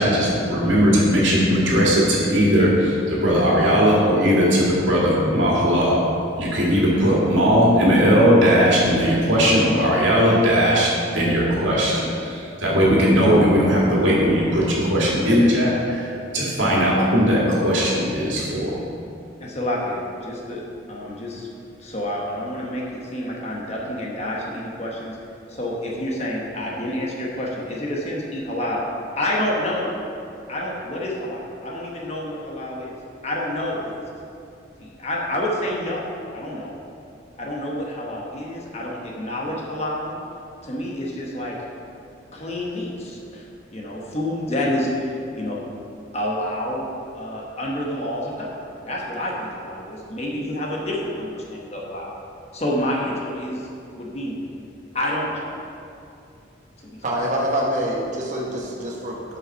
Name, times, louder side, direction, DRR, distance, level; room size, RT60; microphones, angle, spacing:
voice 1, 0.0-6.0 6.4-18.7, equal, 75° right, -5 dB, 2.1 m, -18 dB
voice 2, 19.4-20.6 20.9-21.5 21.8-25.2 25.5-28.8 29.2-33.0 33.2-33.8 34.8-36.8 37.4-40.2 40.6-41.6 42.3-43.4 43.7-45.6 46.1-46.9 47.1-48.6 48.8-52.1 52.5-53.7 54.0-54.4 54.9-55.4 56.8-57.0, left 1 dB, 35° left, -3 dB, 1.1 m, -28 dB
voice 3, 57.0-59.4, equal, 40° right, -2 dB, 1.2 m, -25 dB
7.3 x 5.5 x 5.6 m, 2.6 s
head